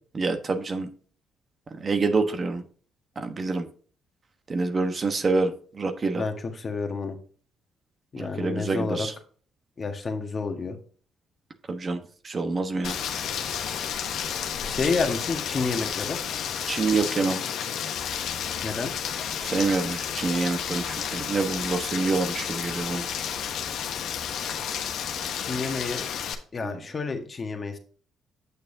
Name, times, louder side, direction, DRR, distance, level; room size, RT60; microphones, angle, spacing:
voice 1, 0.1-0.9 1.8-2.6 3.2-3.6 4.5-6.2 8.2-9.1 11.7-12.0 12.2-13.0 16.7-17.4 19.4-23.0 26.6-26.7, right 3 dB, 40° right, 7 dB, 1.1 m, -26 dB
voice 2, 6.1-7.2 8.1-9.1 9.8-10.8 14.6-16.2 18.6-18.9 25.4-26.1 26.5-27.8, left 4 dB, 40° left, 4 dB, 1.5 m, -29 dB
Rain, 12.8-26.3, left 8 dB, 70° left, 1.1 m, -31 dB
8.3 x 6.7 x 2.8 m, 0.44 s
supercardioid pair, 70°, 0 cm